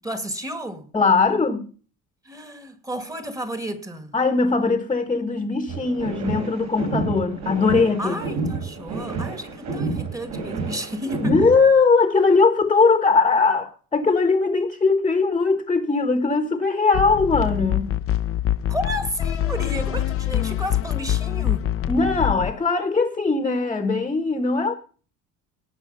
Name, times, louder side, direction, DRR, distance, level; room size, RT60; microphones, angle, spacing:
voice 1, 0.0-0.9 2.2-4.2 8.0-11.5 18.7-21.7, equal, 10° right, 1.9 m, -32 dB
voice 2, 0.9-1.7 4.1-8.2 11.2-17.9 21.9-24.7, left 4 dB, 15° left, 1.3 m, -20 dB
sound 1, 5.7-11.7, right 3 dB, 55° right, 5.5 m, -30 dB
sound 2, 16.9-22.5, left 11 dB, 45° left, 0.7 m, -25 dB
18.0 x 6.1 x 5.4 m
cardioid pair, 130°, 32 cm